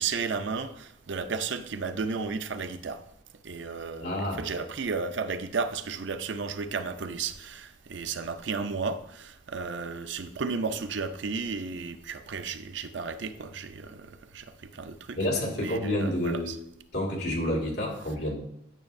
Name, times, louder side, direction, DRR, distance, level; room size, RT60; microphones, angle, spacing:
voice 1, 0.0-3.0 3.4-14.1 14.3-14.4 14.8-15.2 15.6-16.6, right 5 dB, 90° right, 0.5 m, -33 dB
voice 2, 4.0-4.4 15.1-16.5 16.9-18.3, left 1 dB, 65° left, 2.1 m, -29 dB
9.1 x 6.5 x 2.6 m
head